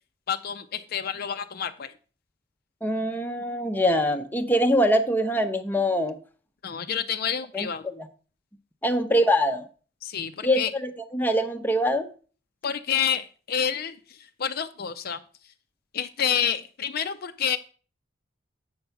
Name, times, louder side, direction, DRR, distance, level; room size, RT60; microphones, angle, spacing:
voice 1, 0.3-1.9 6.6-7.9 10.0-10.7 12.6-13.9 14.4-15.2 15.9-17.6, left 8 dB, 50° left, 10 dB, 0.5 m, -28 dB
voice 2, 2.8-6.2 7.5-8.1 8.8-9.7 10.4-12.1, equal, 10° left, 6 dB, 0.6 m, -24 dB
7.9 x 5.4 x 5.7 m, 0.39 s
head